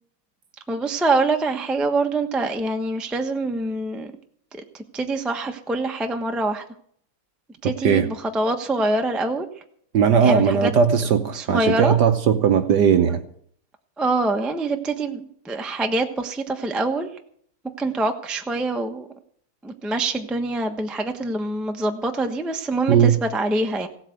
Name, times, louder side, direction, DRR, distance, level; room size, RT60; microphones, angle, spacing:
voice 1, 0.7-4.1 4.5-6.6 7.6-9.5 10.2-10.7 11.3-12.0 14.0-17.1 17.8-19.1 19.6-23.9, right 2 dB, ahead, 0.5 m, -25 dB
voice 2, 9.9-13.2 22.9-23.2, right 7 dB, 60° right, 1.3 m, -18 dB
16.5 x 8.3 x 7.9 m
omnidirectional pair, 2.4 m